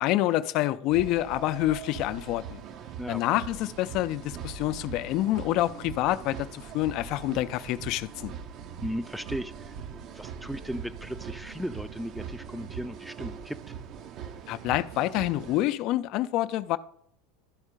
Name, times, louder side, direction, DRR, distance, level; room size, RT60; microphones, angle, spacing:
voice 1, 0.0-2.6 3.1-8.3 14.5-16.8, left 15 dB, 55° left, 0.5 m, -27 dB
sound 1, 0.9-15.7, right 7 dB, 45° right, 0.7 m, -41 dB
voice 2, 8.8-13.6, equal, ahead, 0.5 m, -36 dB
12.0 x 4.4 x 5.0 m
hypercardioid pair, 85°, 0 cm